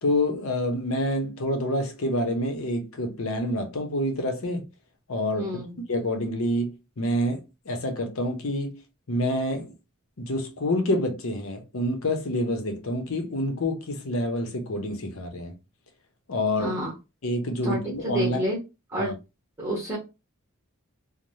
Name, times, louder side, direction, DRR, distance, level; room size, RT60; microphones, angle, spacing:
voice 1, 0.0-4.6 5.1-5.5 5.9-8.8 9.1-9.7 10.2-15.5 16.3-16.8 17.2-18.4 19.0-19.1, left 1 dB, 70° left, 0.7 m, -27 dB
voice 2, 5.4-5.8 16.6-16.9 17.6-18.6 18.9-19.1 19.6-20.0, equal, 10° right, 1.0 m, -29 dB
3.2 x 2.1 x 2.6 m
head